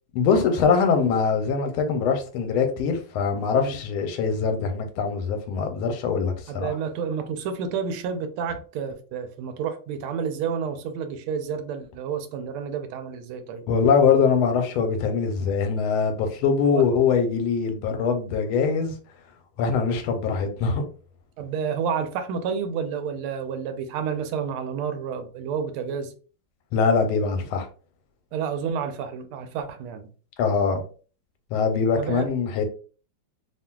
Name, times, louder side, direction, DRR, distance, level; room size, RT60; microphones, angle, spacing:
voice 1, 0.1-6.7 13.7-18.9 19.6-20.9 26.7-27.7 30.4-30.8 31.5-32.6, left 5 dB, 85° left, 1.4 m, -23 dB
voice 2, 6.5-13.6 16.7-16.8 21.4-26.1 28.3-30.1 32.0-32.2, right 6 dB, 85° right, 1.4 m, -30 dB
3.2 x 2.5 x 2.2 m
omnidirectional pair, 2.3 m